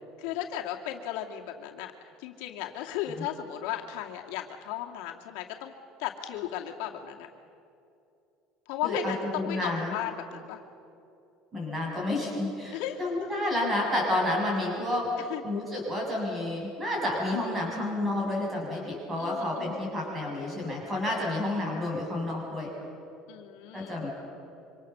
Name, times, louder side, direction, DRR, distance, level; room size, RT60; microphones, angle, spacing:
voice 1, 0.2-1.9 2.2-5.7 6.0-7.3 8.7-10.6 12.7-13.1 15.3-15.4 19.2-19.8 23.3-24.0, left 12 dB, 75° left, 1 dB, 2.4 m, -35 dB
voice 2, 8.8-9.9 11.5-15.1 15.4-22.7 23.7-24.1, left 1 dB, 15° right, -2 dB, 7.2 m, -30 dB
27.0 x 25.5 x 7.0 m, 2.7 s
cardioid pair, 180°, 0 cm